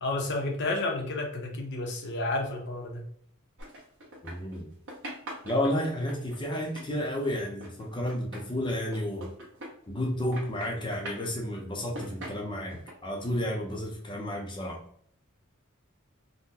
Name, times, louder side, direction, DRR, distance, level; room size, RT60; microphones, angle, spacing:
voice 1, 0.0-3.0, left 2 dB, 55° left, 2 dB, 0.8 m, -31 dB
sound 1, 3.6-4.6 4.9-10.1 10.3-11.3 11.8-12.9, right 1 dB, 60° right, 1.4 m, -42 dB
voice 2, 4.2-4.7 5.4-9.3 9.9-14.8, left 1 dB, 20° left, -1 dB, 0.6 m, -31 dB
3.7 x 2.2 x 2.7 m, 0.64 s
head